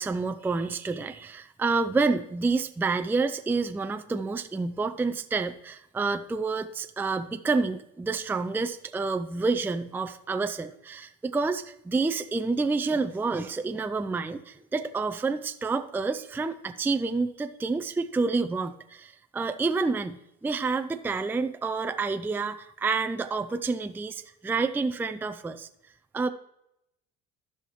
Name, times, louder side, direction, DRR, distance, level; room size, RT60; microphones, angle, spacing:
voice 1, 0.0-25.7 26.1-26.3, right 4 dB, 5° right, 8 dB, 0.4 m, -28 dB
14.5 x 5.7 x 3.1 m, 0.83 s
supercardioid pair, 85°, 29 cm